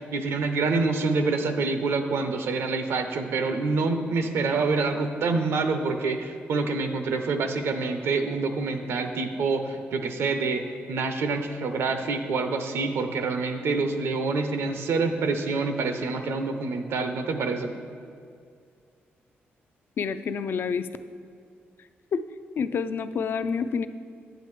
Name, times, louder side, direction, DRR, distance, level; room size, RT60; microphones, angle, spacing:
voice 1, 0.0-17.7, right 3 dB, 80° right, 7 dB, 0.6 m, -27 dB
voice 2, 20.0-20.9 22.1-22.2 22.6-23.9, left 6 dB, 60° left, 12 dB, 0.3 m, -28 dB
9.0 x 7.5 x 3.2 m, 2.3 s
cardioid pair, 110°, 4 cm